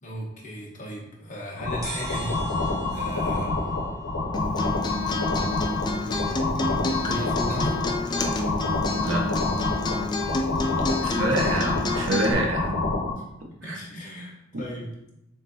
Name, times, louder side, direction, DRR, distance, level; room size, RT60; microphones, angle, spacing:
voice 1, 0.0-3.8 4.6-4.8 5.9-7.8 11.0-11.6 13.1-14.9, equal, 40° left, -3 dB, 1.0 m, -37 dB
sound 1, 1.6-13.1, left 2 dB, 80° left, 0.9 m, -27 dB
sound 2, 1.8-5.3, right 2 dB, 15° right, 1.0 m, -41 dB
Acoustic guitar, 4.3-12.3, left 3 dB, 20° left, 0.3 m, -29 dB
voice 2, 11.0-12.9 13.7-13.8, right 1 dB, 65° right, 0 dB, 0.8 m, -26 dB
6.1 x 2.6 x 2.7 m, 0.85 s
head